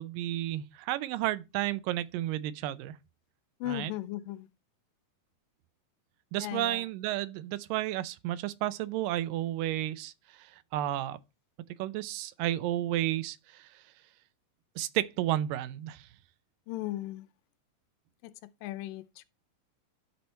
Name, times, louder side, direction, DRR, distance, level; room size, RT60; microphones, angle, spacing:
voice 1, 0.0-2.9 3.7-3.9 6.3-10.1 10.4-10.5 10.7-11.2 11.8-13.7 14.8-16.1, right 14 dB, 85° right, 2.3 m, -32 dB
voice 2, 3.6-4.5 6.4-6.8 16.7-17.3 18.2-18.3 18.6-19.2, left 15 dB, 90° left, 2.3 m, -36 dB
13.0 x 4.3 x 4.3 m
omnidirectional pair, 3.9 m